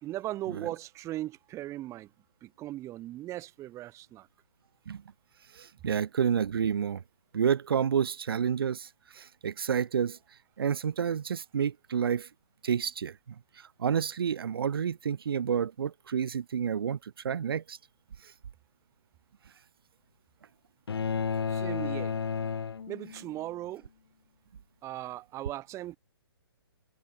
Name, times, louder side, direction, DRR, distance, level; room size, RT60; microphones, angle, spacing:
voice 1, 0.0-2.1 2.4-4.3 21.5-22.1 22.9-23.9 24.8-26.0, right 15 dB, 20° right, 5.5 m, -38 dB
voice 2, 5.5-7.0 7.3-8.9 9.1-10.2 10.6-12.3 12.6-13.1 13.6-17.8, right 7 dB, 60° right, 4.0 m, -29 dB
sound 1, 20.9-23.4, left 6 dB, 65° left, 2.4 m, -32 dB
figure-of-eight pair, 130°, 14 cm